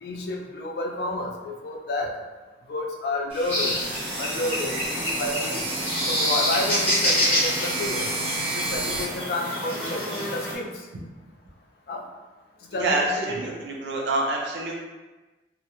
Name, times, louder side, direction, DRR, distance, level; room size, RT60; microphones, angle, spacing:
voice 1, 0.0-2.1 2.7-3.8 4.2-5.7 6.1-8.1 8.4-10.7 11.9-12.0 12.7-13.4, left 2 dB, 60° left, 1 dB, 0.4 m, -30 dB
sound 1, 3.3-9.0, right 2 dB, 30° right, 0.6 m, -31 dB
sound 2, 3.5-10.5, equal, 10° left, 0.6 m, -27 dB
voice 2, 12.8-14.7, right 2 dB, 80° right, -1 dB, 0.5 m, -26 dB
2.4 x 2.1 x 2.8 m, 1.2 s
head